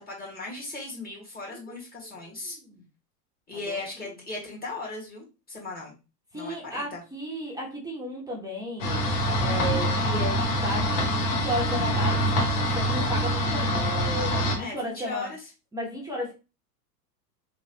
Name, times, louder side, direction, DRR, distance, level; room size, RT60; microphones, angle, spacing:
voice 1, 0.0-2.6 3.5-5.9 6.3-7.0 14.5-15.4, left 3 dB, 20° left, -3 dB, 1.4 m, -37 dB
voice 2, 2.0-2.8 3.7-3.8 6.3-12.2 12.7-15.3 15.7-16.3, equal, 10° right, -3 dB, 0.8 m, -34 dB
sound 1, 8.8-14.5, equal, 70° left, 1.4 m, -25 dB
3.2 x 3.2 x 2.7 m, 0.29 s
hypercardioid pair, 110°, 47 cm